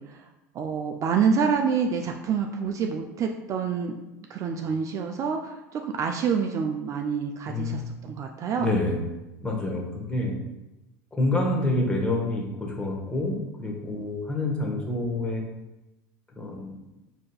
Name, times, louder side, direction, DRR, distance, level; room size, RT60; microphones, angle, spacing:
voice 1, 0.5-4.0 4.3-8.7, right 6 dB, 40° right, 3 dB, 0.3 m, -27 dB
voice 2, 7.5-7.9 8.6-9.0 9.4-10.4 11.1-15.4 16.4-16.7, left 2 dB, 10° left, -1 dB, 0.9 m, -27 dB
5.0 x 2.7 x 2.3 m, 1.0 s
hypercardioid pair, 95°, 9 cm